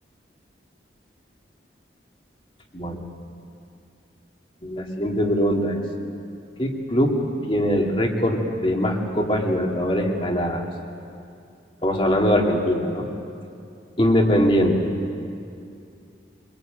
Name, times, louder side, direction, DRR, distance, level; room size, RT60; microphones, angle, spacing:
voice 1, 2.7-3.0 4.6-5.8 6.6-10.7 11.8-13.1 14.0-14.9, equal, 30° left, 1 dB, 2.7 m, -22 dB
25.0 x 22.5 x 9.1 m, 2.5 s
head